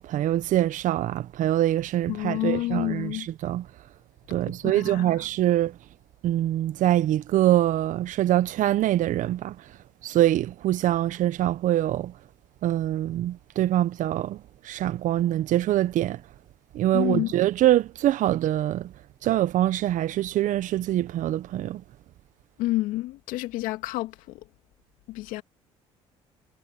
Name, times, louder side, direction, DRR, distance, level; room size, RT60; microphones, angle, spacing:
voice 1, 0.0-3.6 4.3-5.8 6.2-9.6 10.0-12.1 12.6-16.2 16.7-18.9 19.2-21.8, right 13 dB, 60° right, 1.4 m, -24 dB
voice 2, 2.1-3.3 4.6-5.1 16.9-17.3 22.6-24.4 25.1-25.4, left 17 dB, 75° left, 2.3 m, -29 dB
hypercardioid pair, 60°, 14 cm